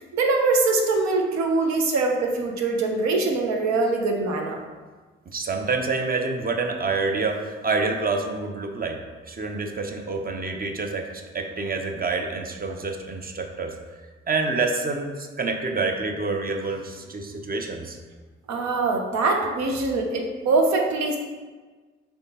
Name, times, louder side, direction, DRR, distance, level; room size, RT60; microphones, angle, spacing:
voice 1, 0.0-4.6 18.5-21.2, right 3 dB, 70° right, 2 dB, 0.7 m, -23 dB
voice 2, 5.3-9.0 9.3-11.1 11.3-13.7 14.3-18.0, right 3 dB, 30° right, 3 dB, 0.6 m, -27 dB
4.3 x 3.4 x 2.8 m, 1.4 s
supercardioid pair, 45°, 29 cm